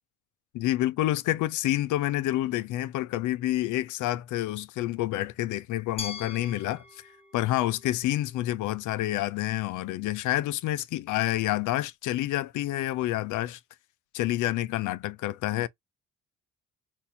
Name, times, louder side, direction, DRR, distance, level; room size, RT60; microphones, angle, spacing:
voice 1, 0.5-6.8 7.3-13.6 14.1-15.7, left 15 dB, 80° left, 0.5 m, -28 dB
Glass, 6.0-8.9, left 5 dB, 20° left, 1.0 m, -43 dB
2.6 x 2.6 x 4.2 m
cardioid pair, 90°, 30 cm